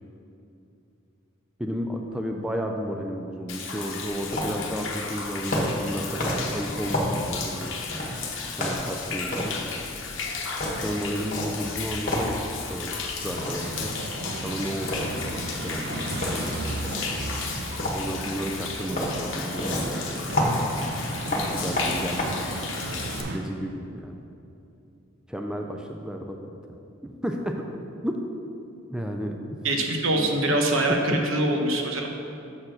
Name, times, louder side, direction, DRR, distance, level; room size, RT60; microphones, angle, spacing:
voice 1, 1.6-7.7 8.6-9.5 10.8-12.4 12.7-14.0 14.3-16.5 17.9-20.0 20.3-20.8 21.0-22.3 23.3-24.3 25.3-26.4 27.0-27.6 28.0-28.2 28.9-29.4, equal, 5° right, 2 dB, 0.3 m, -33 dB
Human voice / Rain / Stream, 3.5-23.2, left 5 dB, 65° left, 0.9 m, -35 dB
sound 1, 4.0-22.2, left 1 dB, 40° left, 1.3 m, -32 dB
sound 2, 13.2-23.4, right 2 dB, 55° right, 0.6 m, -35 dB
voice 2, 29.6-32.1, right 1 dB, 70° right, 2 dB, 0.9 m, -24 dB
7.1 x 4.5 x 6.3 m, 2.7 s
head